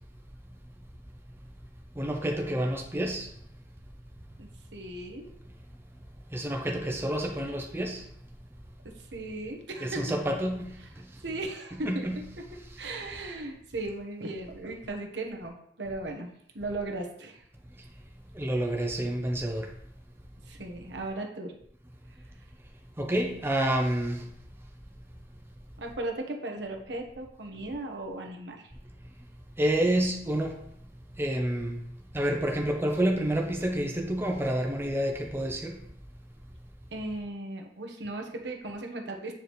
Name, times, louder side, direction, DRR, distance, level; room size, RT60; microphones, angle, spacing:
voice 1, 1.9-3.3 6.3-8.1 9.8-10.8 11.8-12.2 18.3-19.7 23.0-24.3 29.6-30.5 31.2-31.9 32.1-35.8, right 1 dB, 15° right, 1 dB, 0.7 m, -28 dB
voice 2, 4.4-5.3 8.8-10.2 10.8-10.9 11.2-12.2 12.8-17.4 20.5-21.5 25.8-28.7 36.9-39.3, right 2 dB, 70° right, 2 dB, 1.1 m, -37 dB
8.5 x 4.8 x 3.1 m, 0.73 s
head